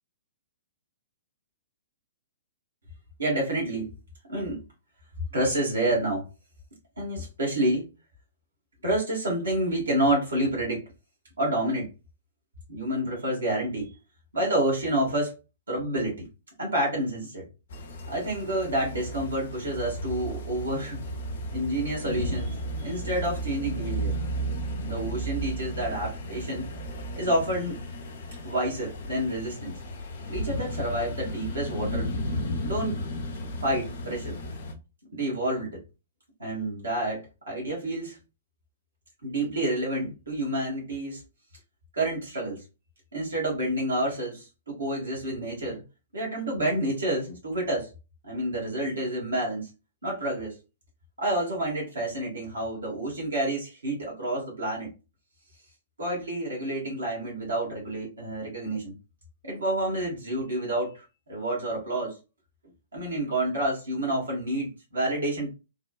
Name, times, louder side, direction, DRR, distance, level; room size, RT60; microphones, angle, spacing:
voice 1, 3.2-3.9 4.3-4.6 5.3-6.2 7.0-7.9 8.8-10.9 11.4-11.9 12.7-13.9 14.3-15.3 15.7-16.3 16.6-17.5 18.1-21.0 21.5-24.2 24.8-26.6 27.1-27.8 28.4-29.7 30.3-32.1 32.6-33.0 33.6-34.4 35.1-35.8 36.4-38.2 39.2-41.2 41.9-42.6 43.1-45.8 46.1-47.9 48.2-49.7 50.0-50.6 51.2-54.9 56.0-58.9 59.4-62.2 62.9-65.5, right 1 dB, 80° right, -3 dB, 1.4 m, -29 dB
sound 1, 17.7-34.7, equal, 60° left, 0.6 m, -34 dB
3.5 x 2.2 x 2.2 m, 0.29 s
figure-of-eight pair, 115°, 0 cm